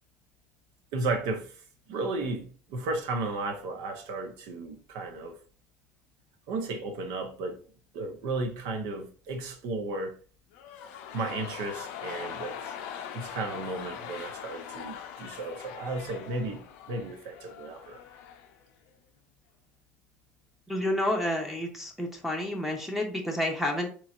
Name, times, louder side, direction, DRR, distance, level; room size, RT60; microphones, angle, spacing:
voice 1, 0.9-1.5 1.9-5.3 6.5-7.6 7.9-10.1 11.1-12.7 13.1-16.6 16.9-18.0, right 3 dB, 65° right, 0.8 m, -34 dB
sound 1, 10.5-18.6 18.9-19.0, left 8 dB, 65° left, 0.5 m, -42 dB
voice 2, 20.7-23.9, left 1 dB, 5° right, 0.9 m, -30 dB
3.8 x 3.1 x 2.4 m
hypercardioid pair, 65°, 7 cm